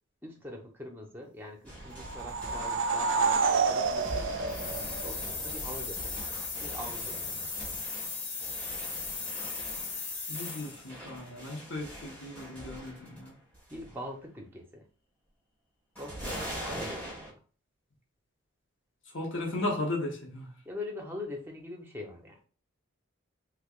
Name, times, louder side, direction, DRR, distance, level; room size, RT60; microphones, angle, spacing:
voice 1, 0.2-4.3 5.0-6.3 6.6-7.5 13.7-14.8 16.0-17.3 20.6-22.4, left 1 dB, 10° right, 0.7 m, -43 dB
sound 1, 1.6-13.3 13.5-14.0 15.9-17.3, right 1 dB, 5° left, 1.5 m, -43 dB
sound 2, 1.9-5.5, right 4 dB, 60° right, 0.4 m, -29 dB
sound 3, 4.5-10.9, left 4 dB, 90° left, 1.9 m, -37 dB
voice 2, 10.3-13.4 16.7-16.8 19.1-20.6, left 2 dB, 60° left, 1.0 m, -36 dB
3.5 x 3.3 x 2.4 m
head